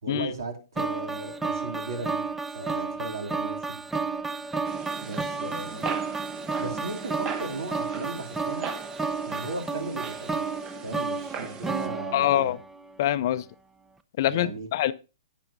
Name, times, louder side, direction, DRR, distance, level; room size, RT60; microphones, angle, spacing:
voice 1, 0.0-2.2 2.5-3.8 5.0-5.9 6.6-8.7 9.2-10.4 10.8-12.5 14.3-14.7, right 3 dB, 70° right, 2.8 m, -36 dB
sound 1, 0.8-12.9, right 4 dB, 10° right, 0.5 m, -32 dB
sound 2, 4.6-11.9, right 6 dB, 25° right, 1.1 m, -40 dB
voice 2, 12.1-12.6 13.0-13.4 14.2-14.9, left 12 dB, 50° left, 0.6 m, -24 dB
11.5 x 9.4 x 2.7 m
hypercardioid pair, 125°, 2 cm